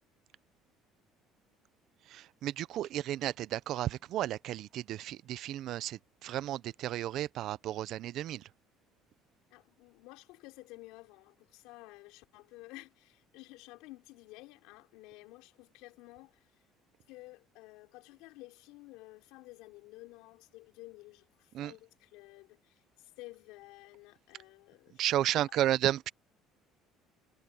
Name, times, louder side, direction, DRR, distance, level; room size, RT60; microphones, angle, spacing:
voice 1, 2.1-8.4 21.5-21.7 25.0-26.1, right 13 dB, 50° right, 0.5 m, -33 dB
voice 2, 9.5-16.4 17.1-22.7 23.2-25.5, left 21 dB, 85° left, 4.9 m, -52 dB
cardioid pair, 160°, 0 cm